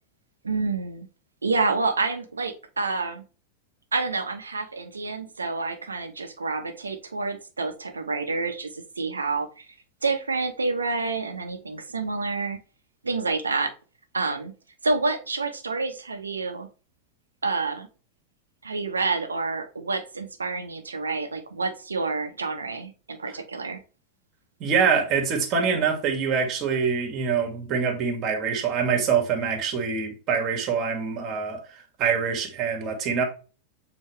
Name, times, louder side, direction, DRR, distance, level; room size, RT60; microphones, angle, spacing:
voice 1, 0.4-1.1 1.4-3.2 3.9-9.7 10.0-12.6 13.0-13.7 14.1-14.5 14.8-16.7 17.4-17.9 18.6-23.8, right 3 dB, 75° right, 1.1 m, -28 dB
voice 2, 24.6-33.2, right 6 dB, 40° right, 1.9 m, -25 dB
7.3 x 4.1 x 3.3 m
figure-of-eight pair, 90°, 0 cm